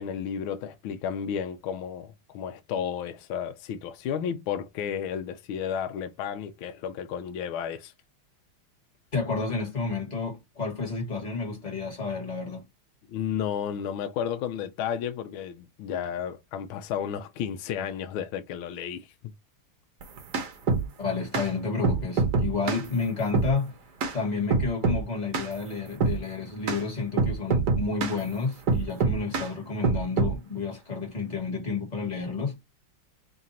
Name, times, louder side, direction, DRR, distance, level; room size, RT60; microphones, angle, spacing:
voice 1, 0.0-7.9 13.1-19.1, left 8 dB, 75° left, 1.3 m, -32 dB
voice 2, 9.1-12.6 21.0-23.7 24.1-32.5, left 4 dB, 25° left, 1.3 m, -30 dB
sound 1, 20.0-20.9 21.3-21.5 21.8-22.9 23.3-23.5 24.0-24.2 24.5-25.0 25.3-25.5 26.0-26.2 26.7-26.8 27.2-28.2 28.7-29.5 29.8-30.4, right 4 dB, 55° right, 1.3 m, -25 dB
3.8 x 2.5 x 4.2 m
omnidirectional pair, 2.4 m